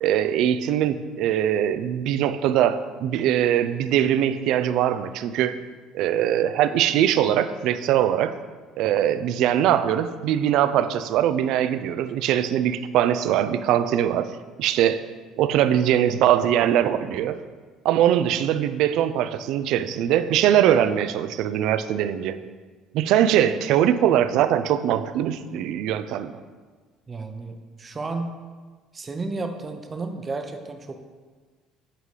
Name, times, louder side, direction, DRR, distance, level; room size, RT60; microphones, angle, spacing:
voice 1, 0.0-5.6 5.9-8.3 8.8-14.3 14.6-15.0 15.4-17.4 17.8-22.4 22.9-26.3, right 10 dB, 70° right, 12 dB, 0.3 m, -22 dB
voice 2, 27.1-28.3 28.9-31.0, right 3 dB, 30° right, 6 dB, 0.6 m, -32 dB
8.2 x 3.8 x 3.2 m, 1.4 s
supercardioid pair, 95°, 0 cm